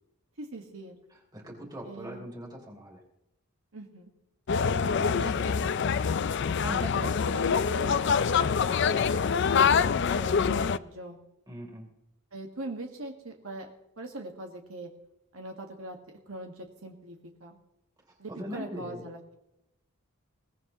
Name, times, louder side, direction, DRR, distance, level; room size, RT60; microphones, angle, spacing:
voice 1, 0.4-1.0 1.8-2.3 3.7-4.1 5.1-9.3 10.0-11.2 12.3-14.9 15.3-16.0 16.3-17.6 18.2-19.4, right 1 dB, 75° right, 2 dB, 1.7 m, -42 dB
voice 2, 1.3-3.0 4.6-5.7 9.7-10.0 11.5-11.9 18.3-19.0, equal, 20° right, 0 dB, 3.3 m, -42 dB
sound 1, 4.5-10.8, left 6 dB, 55° left, 0.4 m, -25 dB
22.0 x 17.0 x 3.1 m, 0.85 s
head